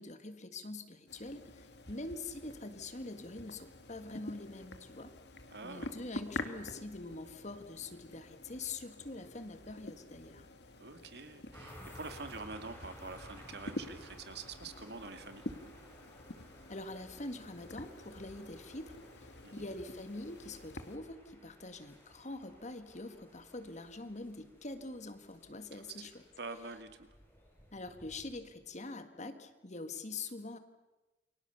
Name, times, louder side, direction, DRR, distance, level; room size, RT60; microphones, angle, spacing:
voice 1, 0.0-5.1 5.6-10.5 16.7-26.1 27.7-30.6, left 2 dB, 40° left, 9 dB, 1.8 m, -44 dB
sound 1, 1.1-21.0, left 2 dB, 65° left, 2.0 m, -48 dB
voice 2, 5.5-5.9 10.7-15.5 19.4-19.6 25.7-26.1 26.4-27.1, right 3 dB, 65° right, 8 dB, 2.3 m, -46 dB
sound 2, 11.5-28.8, equal, 10° left, 7.2 m, -57 dB
29.0 x 24.0 x 6.9 m, 1.1 s
head